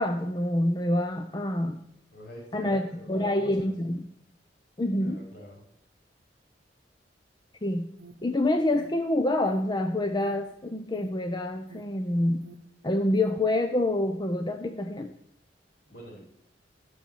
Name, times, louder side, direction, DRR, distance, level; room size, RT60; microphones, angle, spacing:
voice 1, 0.0-1.8 2.5-2.8 3.1-4.1 4.8-5.2 7.6-8.0 8.2-12.6 12.8-15.1, left 1 dB, 25° left, 6 dB, 0.7 m, -27 dB
voice 2, 2.1-3.7 5.0-5.6 15.9-16.2, equal, 65° left, -1 dB, 4.8 m, -46 dB
Alarm, 7.9-13.6, right 3 dB, 65° right, 0.8 m, -53 dB
12.0 x 6.5 x 6.8 m, 0.75 s
head